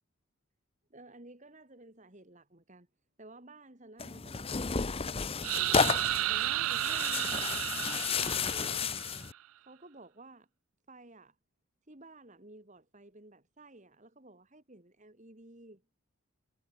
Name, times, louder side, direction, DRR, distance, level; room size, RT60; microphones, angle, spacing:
voice 1, 0.9-2.9 3.2-5.9 6.3-7.6 8.1-9.3 9.6-10.5 10.9-11.4 11.9-15.8, right 2 dB, 35° right, 2.2 m, -53 dB
Tearing, 4.0-9.3, left 5 dB, 25° left, 0.6 m, -32 dB
sound 1, 5.4-9.2, right 14 dB, 75° right, 0.4 m, -33 dB
head